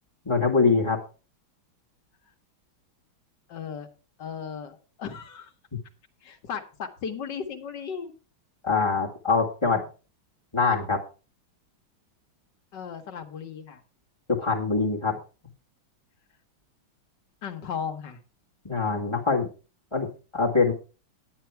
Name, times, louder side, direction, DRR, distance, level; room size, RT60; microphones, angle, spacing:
voice 1, 0.2-1.0 8.6-9.8 10.5-11.0 14.3-15.2 18.6-19.5 19.9-20.7, left 4 dB, 15° left, -2 dB, 1.8 m, -24 dB
voice 2, 3.5-3.9 4.2-5.5 6.2-8.1 12.7-13.8 17.4-18.2, left 7 dB, 60° left, 6 dB, 1.7 m, -36 dB
10.5 x 9.0 x 4.5 m, 0.35 s
omnidirectional pair, 2.3 m